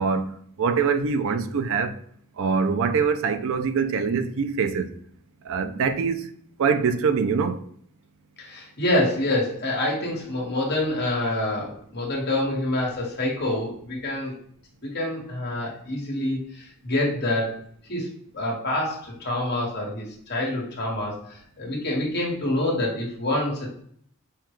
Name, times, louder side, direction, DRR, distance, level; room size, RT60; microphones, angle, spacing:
voice 1, 0.0-2.0 2.4-4.9 5.4-6.3 6.6-7.6, right 5 dB, 65° right, 0.4 m, -24 dB
voice 2, 8.4-14.3 14.8-17.6 17.9-18.1 18.3-23.7, left 1 dB, 50° left, 1.6 m, -27 dB
5.6 x 2.3 x 3.1 m
head